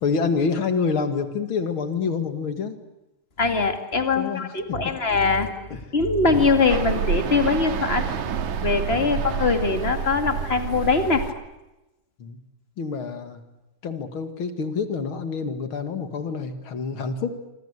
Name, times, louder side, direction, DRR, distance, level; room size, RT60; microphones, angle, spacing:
voice 1, 0.0-2.8 4.2-4.5 5.7-5.8 6.3-6.5 9.0-9.2 12.2-12.4 12.8-13.4 13.8-17.4, left 5 dB, 45° left, 8 dB, 2.5 m, -27 dB
voice 2, 3.4-5.5 5.9-8.1 8.6-11.2, left 4 dB, 20° left, 6 dB, 2.0 m, -22 dB
sound 1, 6.3-11.3, right 7 dB, 70° right, 2.9 m, -28 dB
26.5 x 25.5 x 8.3 m, 0.99 s
omnidirectional pair, 3.6 m